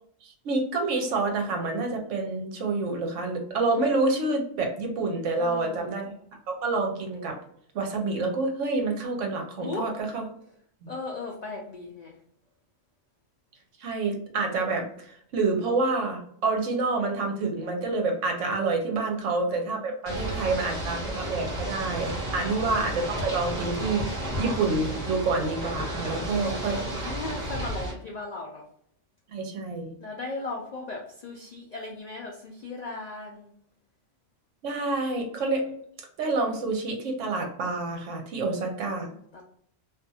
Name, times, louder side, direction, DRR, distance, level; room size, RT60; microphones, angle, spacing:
voice 1, 0.2-6.1 6.5-7.4 7.7-10.2 10.8-10.9 13.8-27.1 29.3-30.0 34.6-35.6 36.2-39.1, right 3 dB, 70° right, 3 dB, 1.0 m, -28 dB
voice 2, 5.4-5.9 9.6-9.9 10.9-12.1 20.1-20.8 26.1-28.6 30.0-33.5 38.4-39.4, left 3 dB, 85° left, -1 dB, 0.3 m, -38 dB
Ocean / Boat Water vehicle, 20.1-27.9, right 1 dB, 35° right, 1.2 m, -32 dB
2.5 x 2.4 x 2.7 m, 0.65 s
omnidirectional pair, 1.3 m